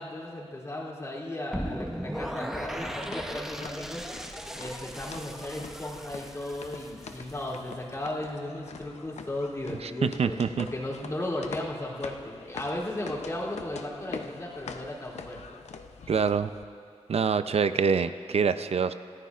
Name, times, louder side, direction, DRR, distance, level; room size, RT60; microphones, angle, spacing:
voice 1, 0.0-4.0 4.5-15.4, left 1 dB, 25° left, -8 dB, 3.0 m, -35 dB
sound 1, 1.5-7.6, equal, 5° right, 0.7 m, -37 dB
sound 2, 2.5-16.6, left 5 dB, 90° left, 0.6 m, -45 dB
voice 2, 9.8-10.7 16.1-16.5 17.1-18.9, right 6 dB, 65° right, 12 dB, 0.5 m, -25 dB
28.0 x 13.5 x 2.5 m, 2.6 s
wide cardioid pair, 120°, 11 cm